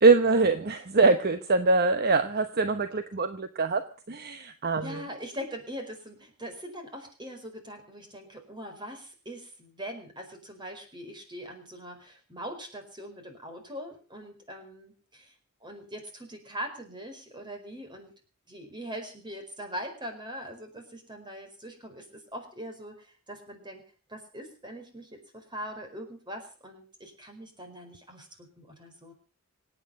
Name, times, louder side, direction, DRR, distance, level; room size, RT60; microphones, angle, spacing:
voice 1, 0.0-3.8 4.1-5.0, right 3 dB, 45° right, 9 dB, 1.0 m, -23 dB
voice 2, 4.8-15.3 15.6-18.1 18.5-23.8 24.1-29.1, equal, 20° right, 5 dB, 4.8 m, -42 dB
25.5 x 9.1 x 5.3 m, 0.39 s
head